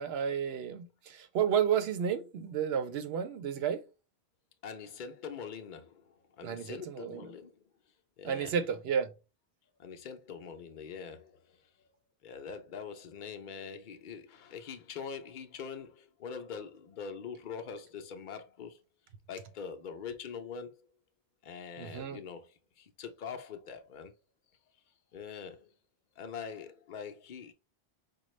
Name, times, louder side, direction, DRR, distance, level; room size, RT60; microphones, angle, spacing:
voice 1, 0.0-3.8 6.4-7.3 8.2-9.1 21.8-22.2, right 8 dB, 75° right, 0.9 m, -32 dB
voice 2, 4.6-7.6 8.2-8.5 9.8-11.6 12.2-18.8 19.3-20.9 21.4-24.1 25.1-25.7 26.2-27.5, left 6 dB, 55° left, 0.7 m, -43 dB
5.0 x 2.3 x 3.1 m
omnidirectional pair, 1.1 m